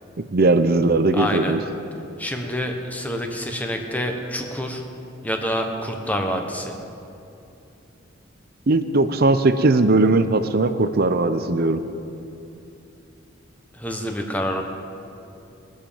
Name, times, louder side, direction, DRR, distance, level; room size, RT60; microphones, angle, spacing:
voice 1, 0.2-1.6 8.7-11.8, right 2 dB, 55° right, 10 dB, 0.6 m, -19 dB
voice 2, 1.1-1.5 2.2-4.8 5.2-6.8 13.7-14.6, equal, 10° left, 3 dB, 1.2 m, -27 dB
22.0 x 7.4 x 5.2 m, 2.7 s
head